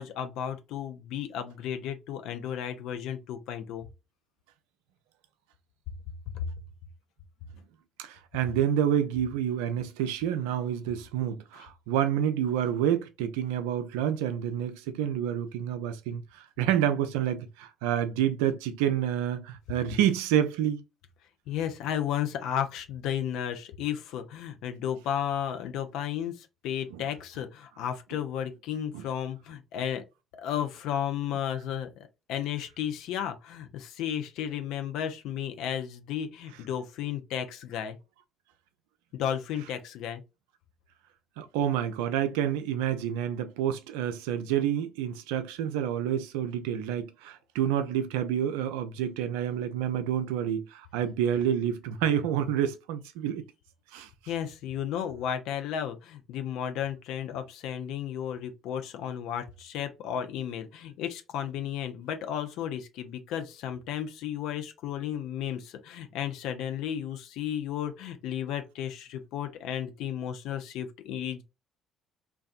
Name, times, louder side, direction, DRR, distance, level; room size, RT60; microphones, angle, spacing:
voice 1, 0.0-3.9 6.3-6.5 21.5-30.0 30.4-38.0 39.1-40.2 54.3-71.4, left 9 dB, 70° left, 0.4 m, -33 dB
voice 2, 8.0-20.8 26.9-27.0 28.9-29.0 41.4-53.4 53.9-54.1, right 10 dB, 75° right, 0.3 m, -28 dB
2.5 x 2.2 x 2.4 m
hypercardioid pair, 50°, 0 cm